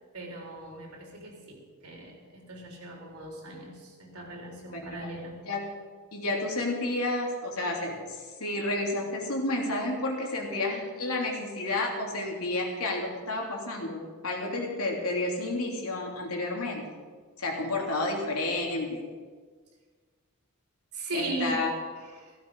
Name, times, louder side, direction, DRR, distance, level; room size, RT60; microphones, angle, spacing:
voice 1, 0.1-5.4 20.9-21.7 22.0-22.4, right 1 dB, 85° right, 0 dB, 3.8 m, -38 dB
voice 2, 4.7-5.1 5.5-5.6 6.1-16.8 17.4-19.1 21.1-21.7, left 2 dB, 75° left, 0 dB, 3.1 m, -31 dB
16.0 x 15.5 x 4.8 m, 1.5 s
head